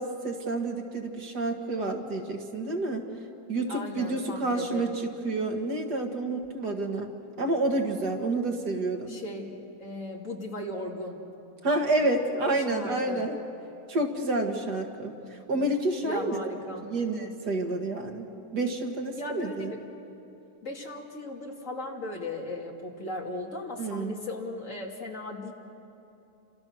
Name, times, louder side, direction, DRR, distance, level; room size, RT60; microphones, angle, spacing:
voice 1, 0.0-3.1 3.5-7.1 7.4-9.2 11.6-13.4 13.9-16.4 16.8-19.7 23.8-24.2, right 2 dB, 90° right, 3 dB, 2.6 m, -29 dB
voice 2, 3.7-4.9 9.1-11.2 12.4-13.3 16.0-16.9 19.1-19.8 20.6-25.5, left 2 dB, 50° left, 0 dB, 3.0 m, -37 dB
29.5 x 26.5 x 6.4 m, 2.8 s
omnidirectional pair, 1.7 m